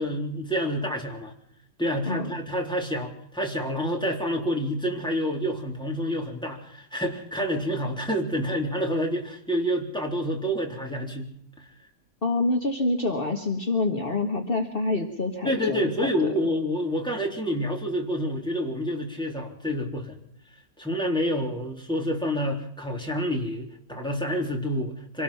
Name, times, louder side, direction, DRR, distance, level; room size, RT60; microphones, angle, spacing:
voice 1, 0.0-1.3 1.8-11.3 11.6-11.7 15.4-20.2 20.8-25.2, equal, 5° left, 0 dB, 3.6 m, -28 dB
voice 2, 12.2-16.3, left 2 dB, 40° left, 3 dB, 1.8 m, -27 dB
26.0 x 18.5 x 5.8 m, 0.68 s
omnidirectional pair, 1.5 m